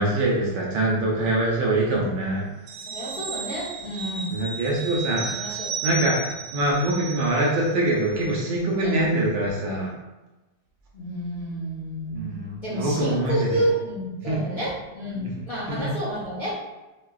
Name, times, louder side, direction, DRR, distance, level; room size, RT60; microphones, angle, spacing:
voice 1, 0.0-2.5 4.3-9.9 12.1-13.6 14.2-14.4 15.1-15.3 15.7-15.9, right 1 dB, 75° right, -3 dB, 1.3 m, -24 dB
sound 1, 2.7-7.8 8.1-8.3, right 4 dB, 90° right, 1.5 m, -34 dB
voice 2, 2.9-4.3 5.2-5.7 8.8-9.0 10.9-16.5, right 1 dB, 40° left, -10 dB, 0.8 m, -30 dB
4.5 x 2.3 x 2.3 m, 1.1 s
omnidirectional pair, 2.4 m